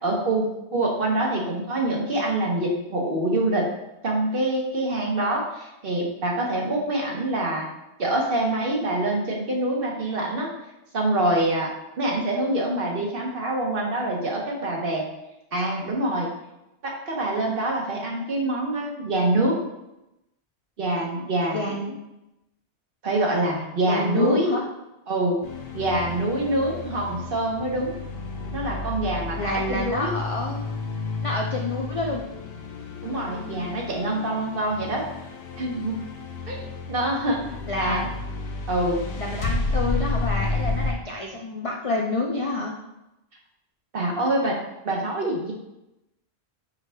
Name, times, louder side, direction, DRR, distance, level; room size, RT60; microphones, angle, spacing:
voice 1, 0.0-3.7 4.0-7.7 8.0-10.5 10.9-15.1 15.5-16.3 16.8-19.6 20.8-21.8 23.0-24.6 25.1-25.4 25.7-27.9 28.5-30.1 33.0-35.0 35.6-36.0 36.5-36.6 36.9-37.4 37.8-38.1 38.7-39.0 43.9-44.6 44.8-45.5, right 1 dB, 55° right, -1 dB, 1.1 m, -25 dB
voice 2, 21.5-22.0 23.9-24.6 29.4-30.7 31.2-32.2 37.7-38.1 39.2-42.7, left 2 dB, 50° left, -1 dB, 0.4 m, -28 dB
sound 1, 25.4-40.9, left 3 dB, 70° left, 0.8 m, -31 dB
4.9 x 4.6 x 2.2 m, 0.91 s
omnidirectional pair, 1.1 m